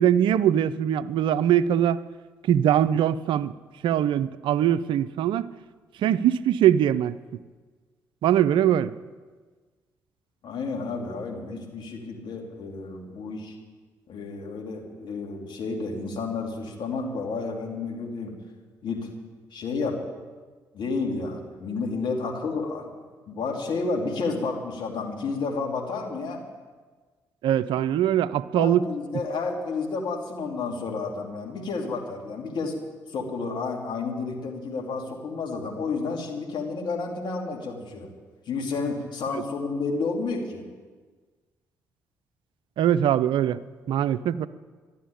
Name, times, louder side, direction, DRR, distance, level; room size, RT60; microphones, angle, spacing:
voice 1, 0.0-2.0 2.5-3.5 3.8-5.5 6.0-7.1 8.2-8.9 27.4-28.8 42.8-43.6 43.9-44.5, right 10 dB, 65° right, 15 dB, 0.5 m, -22 dB
voice 2, 10.4-13.5 14.1-18.3 18.8-19.1 19.5-20.0 20.7-22.9 23.3-26.4 28.6-32.8 33.1-38.1 38.5-40.7, left 4 dB, 60° left, 2 dB, 3.0 m, -31 dB
12.5 x 12.0 x 8.8 m, 1.4 s
hypercardioid pair, 45°, 9 cm